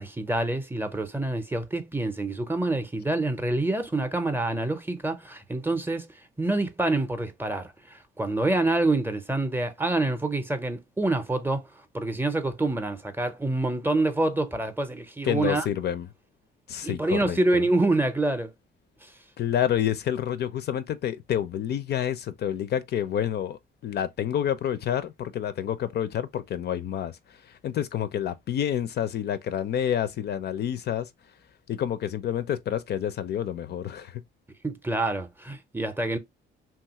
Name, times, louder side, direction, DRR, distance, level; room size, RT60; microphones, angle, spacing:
voice 1, 0.0-6.1 6.4-11.6 11.9-15.7 16.8-18.5 34.6-36.2, right 2 dB, 10° right, 0.5 m, -26 dB
voice 2, 15.2-16.1 16.7-17.7 19.4-31.1 31.7-34.2, left 10 dB, 55° left, 0.4 m, -28 dB
2.9 x 2.3 x 2.7 m
cardioid pair, 90°, 20 cm